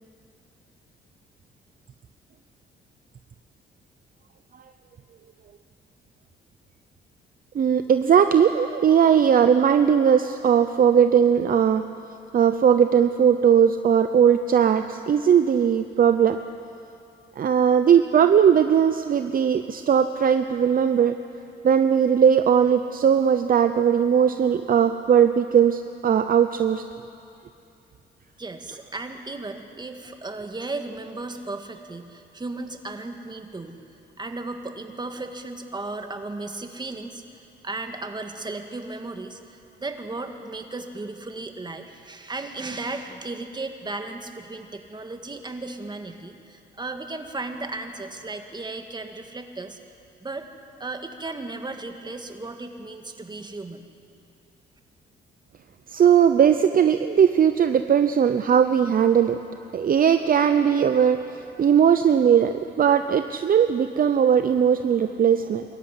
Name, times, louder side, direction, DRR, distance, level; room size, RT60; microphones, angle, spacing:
voice 1, 7.5-11.8 12.3-16.4 17.4-21.2 21.6-26.8 55.9-59.4 59.7-65.6, right 8 dB, 45° right, 9 dB, 0.8 m, -19 dB
voice 2, 28.4-33.8 34.2-49.8 50.2-50.5 50.8-53.9, right 2 dB, 20° right, 5 dB, 1.9 m, -35 dB
23.5 x 14.0 x 9.7 m, 2.6 s
cardioid pair, 90°, 20 cm